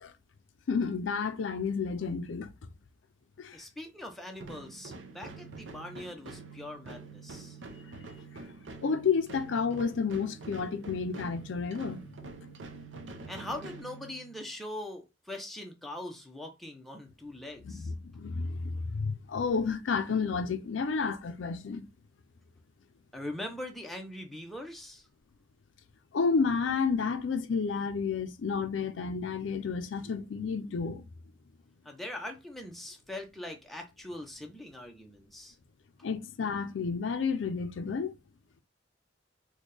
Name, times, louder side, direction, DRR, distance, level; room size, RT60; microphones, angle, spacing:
voice 1, 0.7-2.5 3.4-3.6 8.8-12.2 17.6-21.9 26.1-31.0 36.0-38.1, left 5 dB, 85° left, 0.4 m, -31 dB
voice 2, 3.5-7.6 13.3-17.9 23.1-25.0 31.8-35.6, left 1 dB, ahead, 0.6 m, -42 dB
sound 1, 4.4-14.5, right 3 dB, 80° right, 0.6 m, -46 dB
4.1 x 2.2 x 3.2 m
head